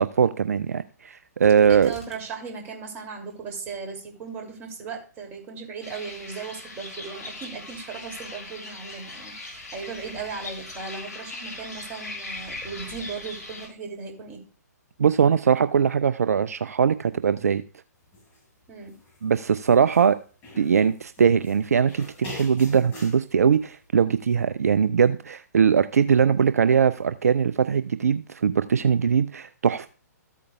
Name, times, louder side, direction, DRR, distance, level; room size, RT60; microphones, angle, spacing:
voice 1, 0.0-1.9 15.0-17.6 19.2-20.2 20.6-29.9, right 7 dB, 60° right, 0.4 m, -21 dB
sound 1, 1.4-2.3 2.6-2.7 3.3-3.7 4.3-4.4, right 1 dB, 5° left, 1.9 m, -47 dB
voice 2, 1.7-14.4 18.7-18.9, right 5 dB, 20° right, 2.6 m, -37 dB
sound 2, 5.8-13.7, left 2 dB, 70° left, 5.9 m, -39 dB
sound 3, 18.1-18.4 18.8-20.1 20.4-21.6 21.9-23.2, left 2 dB, 20° left, 5.8 m, -42 dB
14.0 x 8.3 x 2.3 m
figure-of-eight pair, 120°, 9 cm